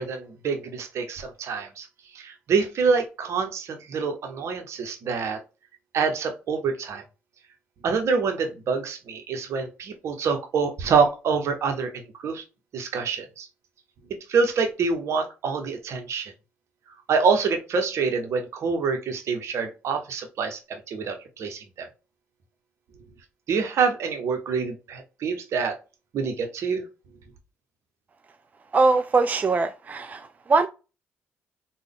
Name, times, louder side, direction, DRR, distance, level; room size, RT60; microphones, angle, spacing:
voice 1, 0.0-1.9 2.1-5.4 5.9-7.0 7.8-12.4 12.7-13.5 14.3-16.3 17.1-21.9 23.5-25.8 26.1-26.8, right 5 dB, 60° right, 0.8 m, -26 dB
voice 2, 28.7-30.7, right 3 dB, 30° right, 0.3 m, -22 dB
3.5 x 2.2 x 3.5 m
hypercardioid pair, 55°, 6 cm